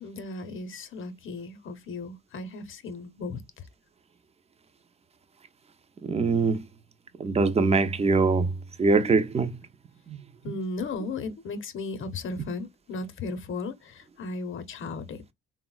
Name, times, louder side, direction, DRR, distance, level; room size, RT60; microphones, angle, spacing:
voice 1, 0.0-3.4 10.4-13.7 14.2-15.3, left 3 dB, 40° left, 0.7 m, -35 dB
voice 2, 6.0-6.6 7.2-8.5 8.8-9.6 10.1-10.2, right 4 dB, 20° right, 0.4 m, -23 dB
3.5 x 2.0 x 2.2 m
cardioid pair, 90°, 30 cm